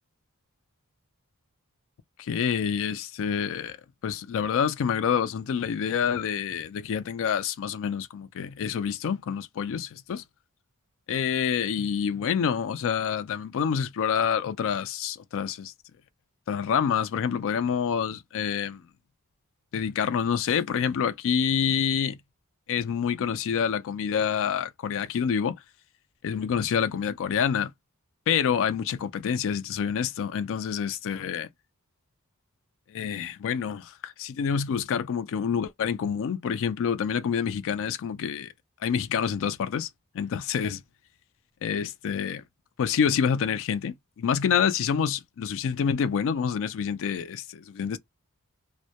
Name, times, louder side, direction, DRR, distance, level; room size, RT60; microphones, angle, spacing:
voice 1, 2.2-3.8 4.0-10.2 11.1-15.7 16.5-18.8 19.7-22.2 22.7-25.6 26.2-27.7 28.3-31.5 32.9-38.5 38.8-39.9 40.1-40.8 41.6-42.4 42.8-48.0, left 7 dB, 60° left, 0.4 m, -27 dB
2.1 x 2.1 x 2.7 m
head